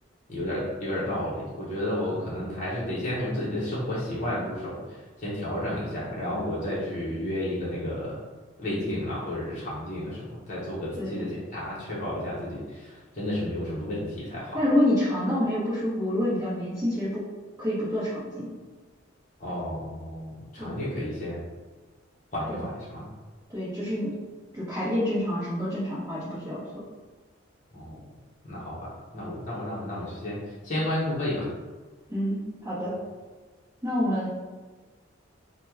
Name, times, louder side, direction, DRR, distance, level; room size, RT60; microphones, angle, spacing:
voice 1, 0.3-8.2 8.6-14.6 19.4-21.4 22.3-23.1 27.7-28.0 28.4-30.4 30.6-31.5, left 1 dB, 40° left, -8 dB, 0.7 m, -32 dB
voice 2, 11.0-11.3 14.5-17.2 17.6-18.5 20.6-20.7 22.5-22.6 23.5-24.2 24.5-26.6 32.1-32.9 33.8-34.3, left 1 dB, 15° right, -13 dB, 0.9 m, -27 dB
2.9 x 2.2 x 3.4 m, 1.3 s
head